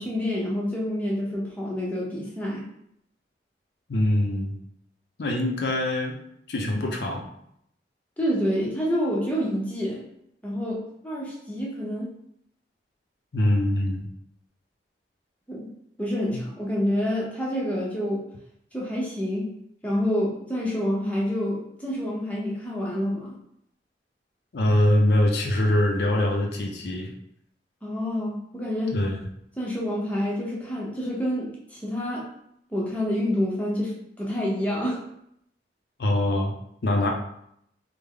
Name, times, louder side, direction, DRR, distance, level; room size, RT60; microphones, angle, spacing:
voice 1, 0.0-2.6 8.2-10.0 10.4-12.1 15.5-15.7 16.0-18.2 18.7-19.5 19.8-23.4 27.8-29.0 29.6-32.3 32.7-35.0, equal, 10° left, -5 dB, 0.6 m, -28 dB
voice 2, 3.9-4.5 5.2-6.2 6.5-7.3 13.3-14.1 16.3-16.4 24.5-27.1 28.9-29.2 36.0-36.5 36.8-37.1, left 1 dB, 75° left, 1 dB, 0.5 m, -23 dB
3.3 x 2.0 x 3.6 m, 0.73 s
head